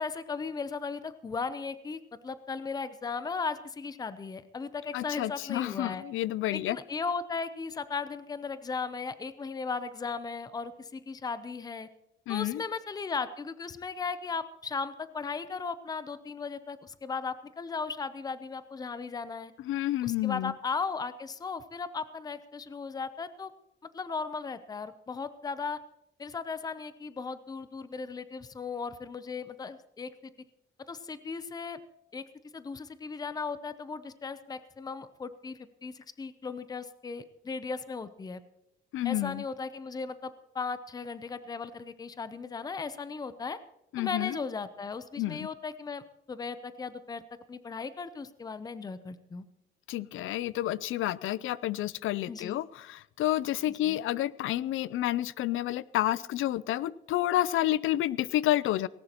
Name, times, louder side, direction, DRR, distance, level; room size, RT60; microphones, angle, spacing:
voice 1, 0.0-6.0 6.5-11.9 12.3-19.5 20.0-23.5 23.9-25.8 26.2-30.3 30.9-31.8 32.1-32.2 32.5-38.4 39.0-43.6 44.0-47.2 47.5-49.5 52.3-52.6 53.8-54.0, left 5 dB, 20° left, 13 dB, 0.6 m, -36 dB
voice 2, 4.9-6.8 12.3-12.6 19.6-20.5 38.9-39.4 43.9-44.4 45.2-45.5 49.9-58.9, left 14 dB, 80° left, 20 dB, 0.5 m, -30 dB
18.5 x 17.5 x 3.0 m, 0.85 s
cardioid pair, 160°, 21 cm